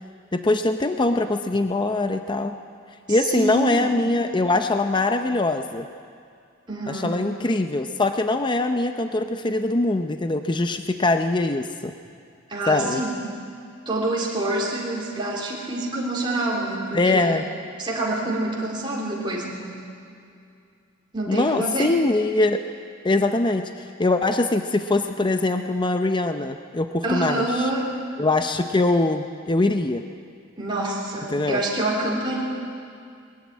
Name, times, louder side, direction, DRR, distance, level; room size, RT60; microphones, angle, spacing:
voice 1, 0.3-2.5 3.1-5.9 6.9-11.9 12.7-13.0 16.9-17.4 21.3-22.6 23.0-27.7 28.2-30.0 31.3-31.6, left 2 dB, 20° left, 7 dB, 0.6 m, -22 dB
voice 2, 3.1-3.9 6.7-7.2 12.5-13.2 13.9-17.4 17.8-19.8 21.1-22.0 27.0-27.9 30.6-32.4, right 1 dB, 25° right, -4 dB, 3.6 m, -27 dB
21.0 x 13.5 x 9.6 m, 2.3 s
head